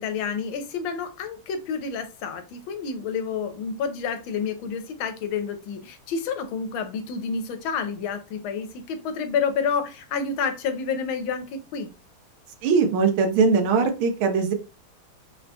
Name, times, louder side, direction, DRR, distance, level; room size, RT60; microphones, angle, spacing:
voice 1, 0.0-11.9, left 6 dB, 85° left, 7 dB, 1.4 m, -29 dB
voice 2, 12.6-14.5, right 5 dB, 85° right, 5 dB, 1.6 m, -20 dB
4.0 x 2.1 x 2.7 m, 0.31 s
omnidirectional pair, 2.2 m